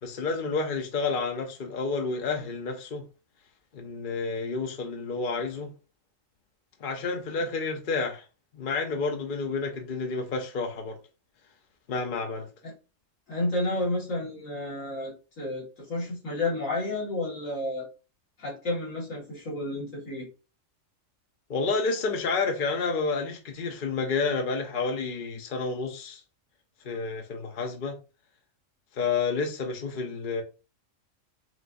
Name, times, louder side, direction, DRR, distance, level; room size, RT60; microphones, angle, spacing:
voice 1, 0.0-3.0 3.7-5.7 6.8-8.2 8.5-11.0 11.9-12.5 21.5-26.2 26.8-28.0 28.9-30.4, left 4 dB, 50° left, 0.7 m, -30 dB
voice 2, 13.3-17.9 18.4-20.3, left 2 dB, 85° left, 2.1 m, -31 dB
6.0 x 2.5 x 2.5 m
omnidirectional pair, 1.3 m